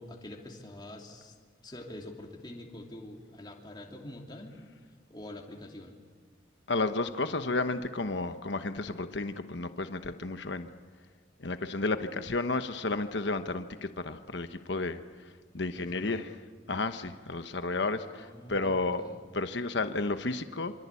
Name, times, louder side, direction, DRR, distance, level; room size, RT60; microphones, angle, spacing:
voice 1, 0.0-1.3 1.6-4.6 5.1-6.0 15.7-16.3 17.8-19.2, left 1 dB, 25° left, 1 dB, 2.9 m, -46 dB
voice 2, 6.7-10.7 11.4-15.0 15.5-16.3 16.7-19.0 19.3-20.7, left 3 dB, 65° left, 9 dB, 1.1 m, -32 dB
27.0 x 25.0 x 8.4 m, 1.5 s
head